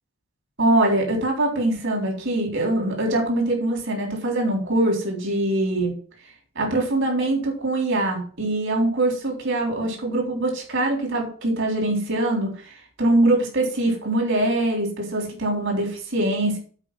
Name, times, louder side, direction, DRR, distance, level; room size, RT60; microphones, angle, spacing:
voice 1, 0.6-5.9 6.6-16.6, right 1 dB, 65° right, 1 dB, 3.8 m, -23 dB
8.1 x 5.1 x 7.5 m, 0.43 s
head